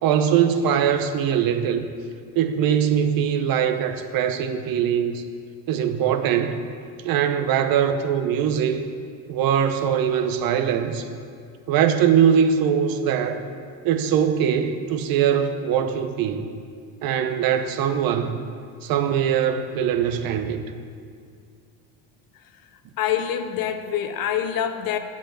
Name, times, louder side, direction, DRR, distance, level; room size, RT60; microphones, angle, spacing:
voice 1, 0.0-1.9 2.4-5.2 5.7-6.6 7.0-8.8 9.3-11.1 11.7-13.5 13.8-16.5 17.0-18.4 18.8-20.6, right 8 dB, 55° right, 8 dB, 0.8 m, -22 dB
voice 2, 23.0-25.0, left 9 dB, 55° left, 9 dB, 0.8 m, -25 dB
7.3 x 7.1 x 7.6 m, 2.2 s
cardioid pair, 110°, 41 cm